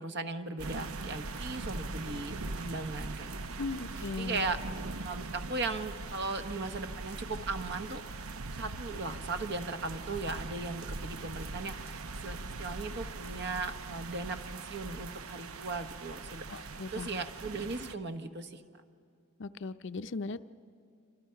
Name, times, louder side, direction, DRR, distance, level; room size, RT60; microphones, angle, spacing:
voice 1, 0.0-3.7 4.2-4.6 5.0-8.0 8.5-18.6, right 3 dB, 50° right, 8 dB, 1.2 m, -38 dB
sound 1, 0.6-17.9, right 3 dB, 80° right, 0.8 m, -41 dB
voice 2, 3.6-4.4 16.5-17.2 19.4-20.4, left 3 dB, 55° left, 12 dB, 0.6 m, -38 dB
28.5 x 25.5 x 5.8 m, 2.4 s
head